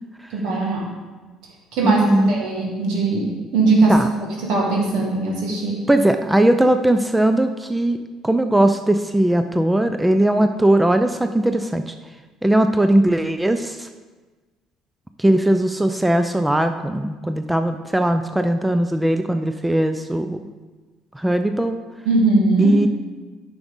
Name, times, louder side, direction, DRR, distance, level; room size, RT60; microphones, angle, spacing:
voice 1, 0.3-0.9 1.7-3.9 4.4-5.8 22.1-22.8, right 3 dB, 70° right, -1 dB, 2.0 m, -20 dB
voice 2, 1.8-2.4 3.9-4.1 5.9-11.9 12.4-13.9 15.2-20.5 21.1-21.8 22.6-22.9, right 1 dB, 10° right, 8 dB, 0.4 m, -19 dB
9.5 x 6.1 x 3.8 m, 1.3 s
hypercardioid pair, 60°, 0 cm